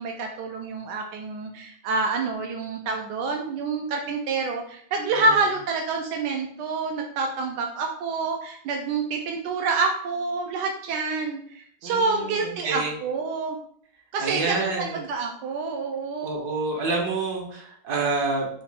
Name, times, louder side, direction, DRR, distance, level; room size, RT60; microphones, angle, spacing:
voice 1, 0.0-13.6 14.1-16.5, right 4 dB, 90° right, 2 dB, 1.2 m, -27 dB
voice 2, 11.8-12.9 14.2-15.0 16.2-18.5, right 3 dB, 75° right, 0 dB, 1.4 m, -28 dB
4.9 x 2.5 x 3.4 m, 0.64 s
omnidirectional pair, 1.8 m